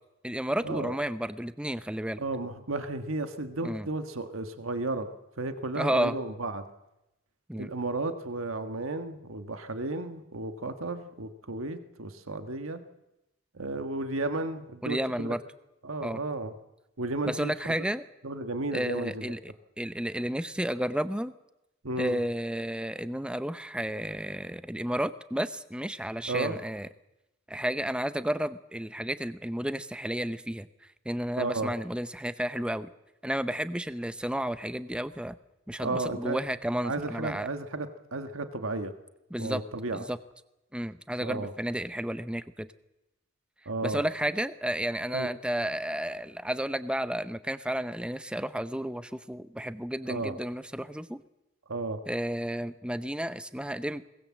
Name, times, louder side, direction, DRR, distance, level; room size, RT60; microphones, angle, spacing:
voice 1, 0.2-2.2 3.6-3.9 5.7-6.2 7.5-7.7 14.8-15.4 16.0-16.2 17.2-18.0 18.7-21.3 22.0-26.9 27.5-30.7 31.1-32.9 33.2-35.3 35.7-37.5 39.3-39.6 39.9-40.2 40.7-42.7 43.8-51.2 52.1-54.0, right 1 dB, 5° right, 13 dB, 0.7 m, -32 dB
voice 2, 2.2-5.1 5.4-6.6 7.5-12.8 13.5-15.3 15.8-16.5 17.0-17.5 18.2-19.3 21.8-22.3 26.3-26.6 31.4-31.7 35.8-36.4 36.8-38.9 39.4-40.0 41.2-41.5 43.6-44.0 45.1-45.3 50.1-50.3 51.7-52.0, right 2 dB, 90° right, 8 dB, 1.5 m, -33 dB
22.0 x 19.5 x 7.5 m, 0.92 s
head